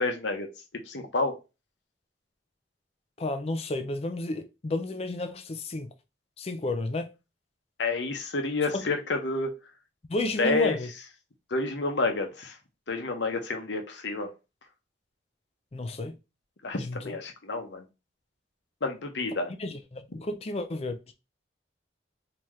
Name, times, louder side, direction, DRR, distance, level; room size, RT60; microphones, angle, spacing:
voice 1, 0.0-1.4 7.8-9.6 10.4-10.8 11.5-12.6 12.9-14.3 16.6-17.8 18.8-19.5, left 3 dB, 80° left, 0.8 m, -29 dB
voice 2, 3.2-5.9 6.4-7.1 8.7-8.9 10.1-10.9 15.7-16.2 16.7-17.2 19.6-21.1, left 2 dB, 35° left, 0.4 m, -32 dB
3.6 x 2.9 x 3.1 m
head